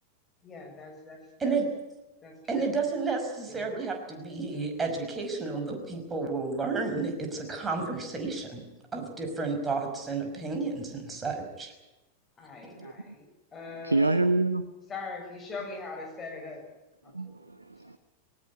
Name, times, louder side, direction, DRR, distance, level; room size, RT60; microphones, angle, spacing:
voice 1, 0.4-1.2 1.4-1.6 2.2-2.7 3.6-3.7 12.4-13.3 13.5-14.2 14.9-16.7 17.0-17.3, left 4 dB, 20° left, 3 dB, 6.9 m, -41 dB
voice 2, 2.5-8.6 8.9-11.7, right 4 dB, 15° right, 3 dB, 5.4 m, -31 dB
voice 3, 12.8-13.1 13.7-14.6 17.1-18.0, right 2 dB, 85° right, 12 dB, 0.9 m, -27 dB
19.5 x 18.0 x 9.4 m, 1.0 s
figure-of-eight pair, 90°, 0 cm